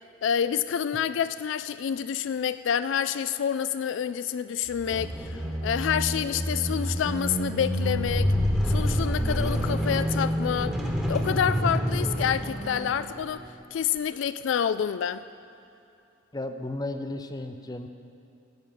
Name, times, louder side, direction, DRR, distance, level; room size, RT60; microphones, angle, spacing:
voice 1, 0.2-8.3 8.7-10.8 11.1-13.4 13.7-15.2, left 8 dB, 75° left, 13 dB, 0.3 m, -28 dB
sound 1, 4.7-13.4, equal, 5° right, 1.1 m, -28 dB
voice 2, 16.3-17.9, left 2 dB, 20° left, 7 dB, 0.6 m, -34 dB
13.5 x 6.4 x 9.2 m, 2.7 s
head